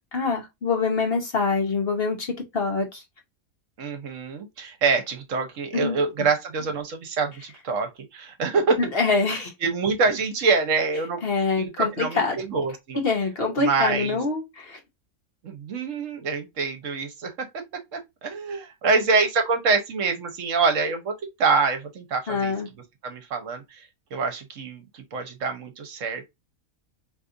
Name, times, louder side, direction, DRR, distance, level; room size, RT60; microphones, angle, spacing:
voice 1, 0.1-3.0 5.7-6.0 8.8-9.5 11.2-12.4 12.9-14.8 22.3-22.7, left 4 dB, 50° left, 1.0 m, -25 dB
voice 2, 3.8-8.8 9.6-11.2 11.6-13.0 13.6-14.2 15.4-17.5 17.9-21.1 21.4-22.5 23.0-23.8 24.1-26.3, right 4 dB, 65° right, 1.1 m, -25 dB
4.0 x 2.8 x 2.5 m
omnidirectional pair, 1.5 m